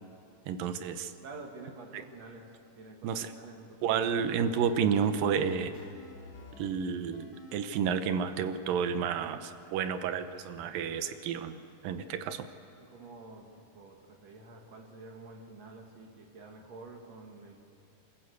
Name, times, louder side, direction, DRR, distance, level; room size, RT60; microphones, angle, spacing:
voice 1, 0.5-1.1 1.9-2.0 3.0-3.3 3.8-5.7 6.6-12.5, right 7 dB, 85° right, 10 dB, 2.7 m, -31 dB
voice 2, 1.2-4.0 12.8-17.6, right 3 dB, 55° right, 1 dB, 3.2 m, -49 dB
sound 1, 4.4-6.7 7.1-8.9, left 4 dB, 40° left, 2.5 m, -49 dB
27.5 x 14.5 x 8.2 m, 2.7 s
omnidirectional pair, 3.9 m